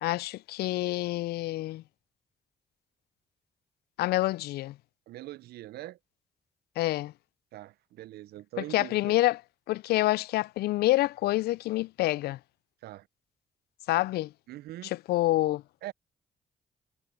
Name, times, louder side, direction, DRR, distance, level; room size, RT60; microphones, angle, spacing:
voice 1, 0.0-1.8 4.0-4.8 6.8-7.1 8.7-9.4 9.7-12.4 13.9-14.3 14.8-15.6, left 17 dB, 75° left, 0.4 m, -27 dB
voice 2, 5.1-6.0 7.5-9.2 12.8-13.1 14.5-14.9 15.8-15.9, right 15 dB, 75° right, 0.6 m, -42 dB
hypercardioid pair, 45°, 17 cm